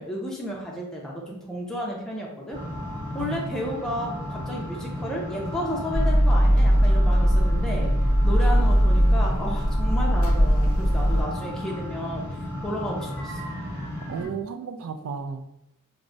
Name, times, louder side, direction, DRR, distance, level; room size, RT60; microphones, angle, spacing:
voice 1, 0.0-2.6 3.1-7.9 8.2-13.4, equal, 5° left, -4 dB, 0.4 m, -32 dB
sound 1, 2.5-14.3, equal, 55° right, 1.2 m, -34 dB
voice 2, 3.2-3.5 7.5-7.8 14.1-15.5, right 5 dB, 75° right, 7 dB, 0.3 m, -34 dB
sound 2, 5.9-11.2, equal, 85° left, 0.7 m, -20 dB
4.5 x 2.0 x 2.6 m, 0.83 s
head